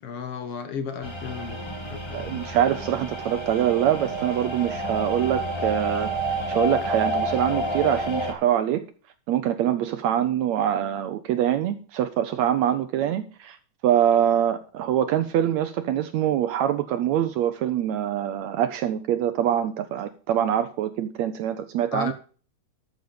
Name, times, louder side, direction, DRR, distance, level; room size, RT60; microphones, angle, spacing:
voice 1, 0.0-2.5 21.9-22.1, left 6 dB, 55° left, 9 dB, 1.8 m, -34 dB
sound 1, 1.0-8.3, right 1 dB, 35° left, 0.4 m, -29 dB
voice 2, 2.1-6.1 6.5-8.8 9.3-13.6 13.8-22.1, right 10 dB, 75° right, 11 dB, 1.6 m, -24 dB
13.5 x 7.0 x 5.1 m, 0.39 s
omnidirectional pair, 3.8 m